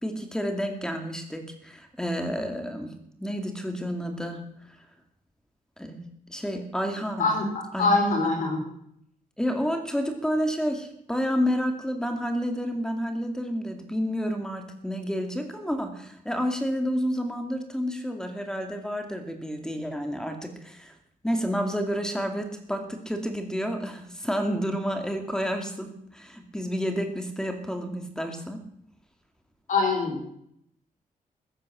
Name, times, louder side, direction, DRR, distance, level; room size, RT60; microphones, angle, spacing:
voice 1, 0.0-2.9 3.2-4.4 5.8-6.0 6.3-7.3 7.7-7.9 8.2-8.3 9.4-20.9 21.2-28.6, equal, 5° left, 5 dB, 2.3 m, -30 dB
voice 2, 7.2-8.6 29.7-30.3, left 3 dB, 65° left, 1 dB, 4.3 m, -24 dB
14.5 x 10.5 x 7.5 m, 0.72 s
wide cardioid pair, 120°, 14 cm